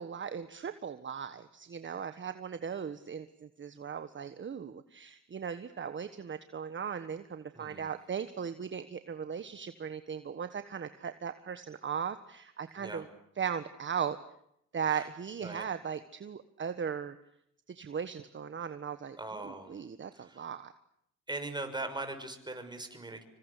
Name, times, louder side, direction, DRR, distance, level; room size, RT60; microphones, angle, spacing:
voice 1, 0.0-13.1 13.4-14.2 14.7-17.2 17.7-20.7, right 7 dB, 40° right, 11 dB, 1.4 m, -38 dB
voice 2, 7.5-7.9 12.8-13.0 14.9-15.1 15.4-15.6 19.2-19.8 20.1-20.5 21.3-23.2, right 2 dB, 15° right, 6 dB, 6.2 m, -40 dB
27.0 x 25.5 x 8.4 m, 0.75 s
cardioid pair, 90°, 30 cm